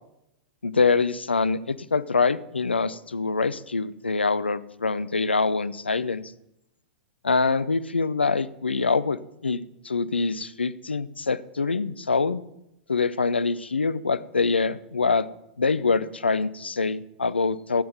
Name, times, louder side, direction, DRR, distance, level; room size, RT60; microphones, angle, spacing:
voice 1, 0.6-6.3 7.2-9.2 9.4-12.4 12.9-15.2 15.6-17.8, left 4 dB, 80° left, 16 dB, 0.5 m, -25 dB
13.0 x 7.8 x 5.1 m, 0.84 s
figure-of-eight pair, 100°, 6 cm